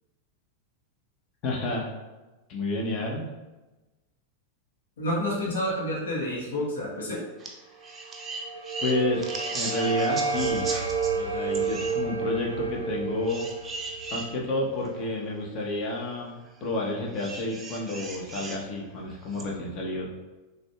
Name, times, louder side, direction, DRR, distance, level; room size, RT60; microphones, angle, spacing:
voice 1, 1.4-1.9 2.5-3.3 8.8-10.7 11.2-13.5 14.1-20.1, left 2 dB, 35° left, 0 dB, 0.8 m, -30 dB
voice 2, 5.0-7.2, left 1 dB, 65° left, -4 dB, 1.0 m, -29 dB
sound 1, 7.4-7.5 7.8-11.1 11.5-12.0 13.3-14.3 15.0-15.1 17.1-18.6 19.3-19.4, right 3 dB, 20° right, 0.5 m, -37 dB
sound 2, 8.1-15.1, right 5 dB, 85° right, 0.4 m, -31 dB
6.2 x 2.3 x 2.3 m, 1.1 s
figure-of-eight pair, 90°, 0 cm